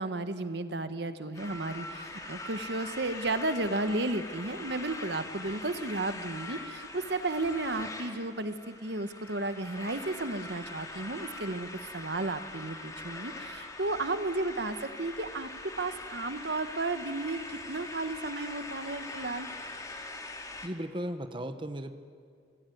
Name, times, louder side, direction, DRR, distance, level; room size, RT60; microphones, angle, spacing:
voice 1, 0.0-11.7 11.9-15.5 15.8-17.4 17.7-19.5, right 2 dB, 60° right, 10 dB, 1.2 m, -33 dB
sound 1, 1.3-20.7, left 2 dB, 20° left, 2.2 m, -43 dB
voice 2, 20.6-21.9, right 1 dB, 25° right, 8 dB, 1.0 m, -36 dB
27.0 x 18.5 x 9.3 m, 2.1 s
head